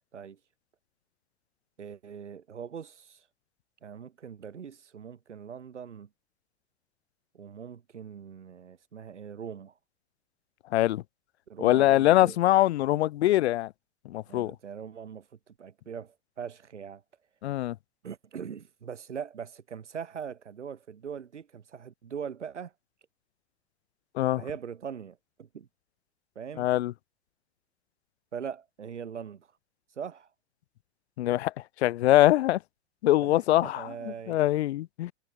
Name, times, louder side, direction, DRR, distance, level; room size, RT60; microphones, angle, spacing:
voice 1, 1.8-3.2 3.8-6.1 7.3-9.7 11.5-12.4 14.3-17.0 18.0-22.7 24.3-25.7 26.3-26.7 28.3-29.5 30.0-30.3 33.2-34.5, right 7 dB, 85° right, 7.8 m, -41 dB
voice 2, 10.7-11.0 11.6-13.7 14.0-14.5 17.4-17.7 24.1-24.4 26.6-26.9 31.2-31.5 31.8-32.6 33.0-33.9 34.3-35.1, left 15 dB, 65° left, 1.7 m, -23 dB
hypercardioid pair, 105°, 34 cm